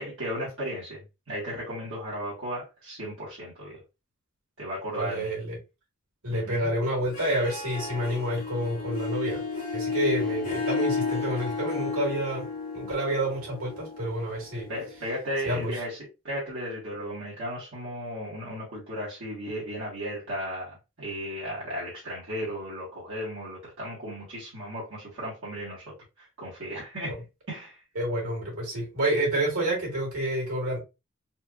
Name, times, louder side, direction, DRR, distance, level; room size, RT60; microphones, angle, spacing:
voice 1, 0.0-3.8 4.6-5.3 6.3-6.7 14.7-27.2 27.5-27.8, equal, 60° right, 1.7 m, -35 dB
voice 2, 5.0-5.6 6.2-9.4 9.7-12.5 12.7-14.7 15.5-15.7 27.1-27.2 28.0-30.8, right 1 dB, 80° right, 2.1 m, -29 dB
Harp, 7.0-15.6, left 4 dB, 35° left, 1.9 m, -33 dB
4.3 x 2.6 x 2.4 m
head